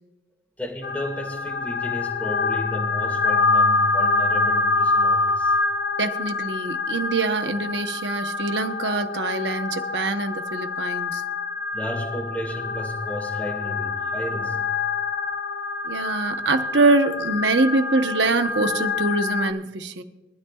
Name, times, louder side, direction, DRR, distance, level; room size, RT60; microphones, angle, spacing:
voice 1, 0.6-5.6 11.7-14.6, left 1 dB, 10° left, -1 dB, 2.0 m, -32 dB
sound 1, 0.8-19.5, left 3 dB, 60° left, 0.7 m, -26 dB
voice 2, 6.0-11.2 15.8-20.0, right 3 dB, 75° right, 7 dB, 1.0 m, -24 dB
23.0 x 12.5 x 2.4 m, 1.1 s
head